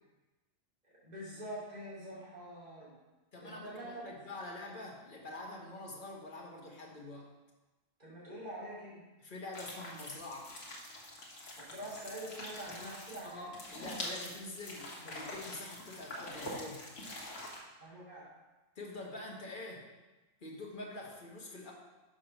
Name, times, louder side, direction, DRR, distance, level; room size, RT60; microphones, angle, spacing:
voice 1, 0.8-3.0 3.4-4.1 4.4-4.5 8.0-9.0 11.5-13.5 17.8-18.3, right 1 dB, 30° right, -9 dB, 2.9 m, -45 dB
voice 2, 3.3-7.3 9.2-10.5 13.2-16.8 18.8-19.8 20.4-21.7, left 2 dB, 40° left, -2 dB, 1.5 m, -45 dB
sound 1, 9.5-17.6, left 1 dB, 65° left, 1.7 m, -45 dB
6.4 x 4.8 x 5.9 m, 1.1 s
omnidirectional pair, 1.3 m